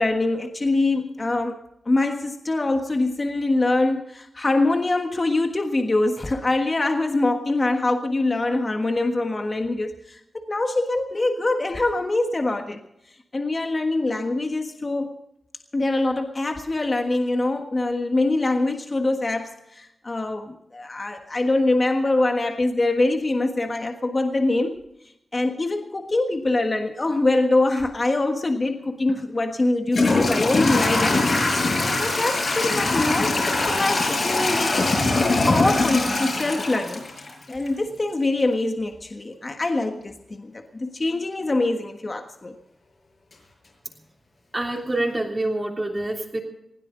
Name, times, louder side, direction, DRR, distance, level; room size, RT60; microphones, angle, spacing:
voice 1, 0.0-12.8 13.3-15.1 15.7-24.9 25.3-35.0 35.5-42.5, left 2 dB, 35° left, 4 dB, 1.5 m, -24 dB
Toilet flush / Trickle dribble, 29.1-29.2 29.9-37.7, left 2 dB, 55° left, 6.8 m, -22 dB
voice 2, 44.5-46.4, right 1 dB, 20° right, -1 dB, 3.2 m, -26 dB
20.5 x 16.5 x 3.9 m, 0.82 s
wide cardioid pair, 100°, 0 cm